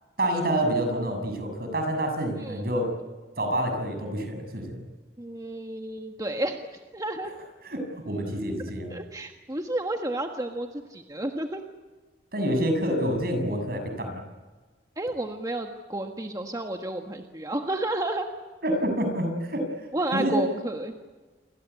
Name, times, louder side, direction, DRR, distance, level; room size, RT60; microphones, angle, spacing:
voice 1, 0.2-2.9 3.4-4.8 7.6-8.9 12.3-14.2 18.6-19.7 20.1-20.4, right 1 dB, 60° right, 5 dB, 7.1 m, -27 dB
voice 2, 5.2-7.3 8.9-11.6 15.0-18.2 19.9-20.9, right 1 dB, 20° right, 4 dB, 1.5 m, -31 dB
29.0 x 23.0 x 8.4 m, 1.3 s
head